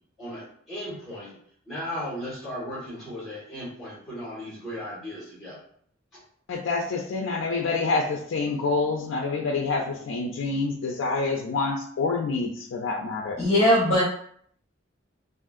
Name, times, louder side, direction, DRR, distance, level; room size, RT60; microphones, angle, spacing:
voice 1, 0.2-1.3 1.7-5.5, equal, ahead, -10 dB, 1.4 m, -36 dB
voice 2, 6.5-13.4, left 3 dB, 75° left, 0 dB, 0.4 m, -27 dB
voice 3, 13.4-14.0, equal, 30° left, -7 dB, 1.0 m, -19 dB
3.5 x 2.4 x 2.4 m, 0.63 s
head